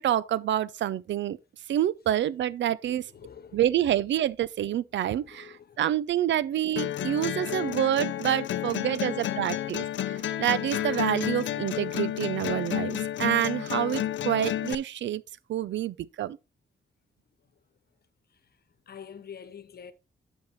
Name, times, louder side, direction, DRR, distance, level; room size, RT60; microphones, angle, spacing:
voice 1, 0.0-1.4 1.7-3.1 3.5-15.2 15.5-16.4, right 11 dB, 80° right, 0.5 m, -27 dB
voice 2, 3.0-3.8 4.9-6.0 6.7-9.9 15.7-15.9 17.4-17.6 18.3-18.6 18.9-19.9, left 7 dB, 55° left, 1.1 m, -50 dB
sound 1, 6.8-14.7, left 12 dB, 80° left, 0.6 m, -31 dB
9.5 x 6.4 x 3.1 m
cardioid pair, 85°, 19 cm